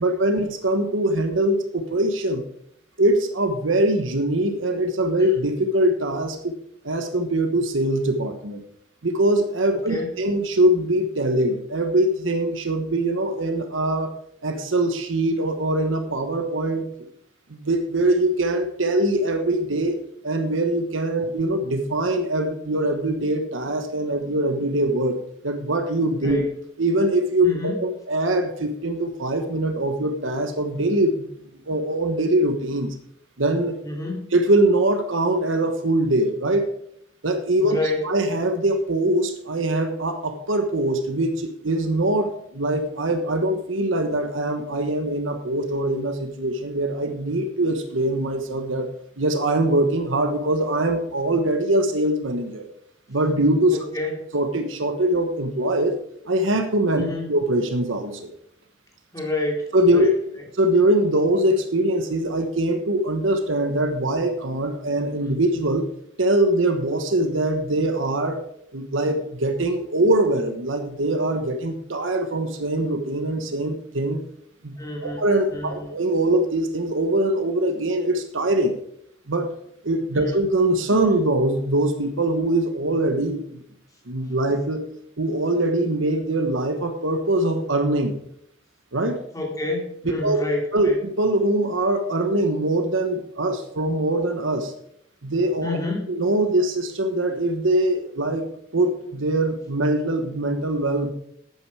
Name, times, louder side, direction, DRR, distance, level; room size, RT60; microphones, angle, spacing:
voice 1, 0.0-2.4 3.0-6.5 6.8-8.6 9.0-14.1 14.4-16.9 17.5-26.4 26.8-31.3 31.7-32.9 33.4-33.8 34.3-36.7 37.2-37.8 38.0-48.9 49.2-52.6 53.1-53.8 54.3-56.0 56.3-58.3 59.7-60.1 60.6-65.9 66.2-68.4 68.7-74.2 74.6-74.7 75.0-78.7 79.3-79.5 79.8-83.6 84.1-84.8 85.2-88.1 88.9-89.2 90.2-90.4 90.7-90.9 91.2-94.7 95.2-95.8 96.1-98.5 98.7-101.1, right 1 dB, 90° right, 7 dB, 1.2 m, -22 dB
voice 2, 27.4-27.9 33.8-34.3 37.6-38.0 53.7-54.1 56.9-57.3 59.1-59.7 59.9-60.1 74.8-75.2 75.5-75.9 80.1-80.4 89.3-91.0 95.6-96.1, left 2 dB, 20° left, -1 dB, 3.1 m, -28 dB
11.5 x 9.0 x 4.8 m, 0.71 s
head